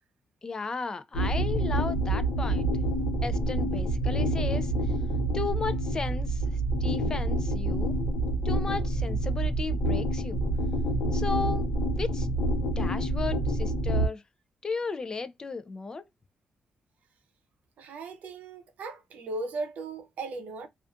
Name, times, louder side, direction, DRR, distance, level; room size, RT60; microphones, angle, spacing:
voice 1, 0.4-2.7 3.2-4.7 5.3-6.4 6.8-7.9 8.4-10.4 11.1-11.7 12.0-12.3 12.8-14.2 14.6-16.0, left 4 dB, 25° left, 0.3 m, -34 dB
sound 1, 1.1-14.1, right 1 dB, 85° left, 0.8 m, -27 dB
voice 2, 17.8-20.7, right 3 dB, 75° right, 0.6 m, -37 dB
2.4 x 2.4 x 2.3 m
cardioid pair, 115°, 3 cm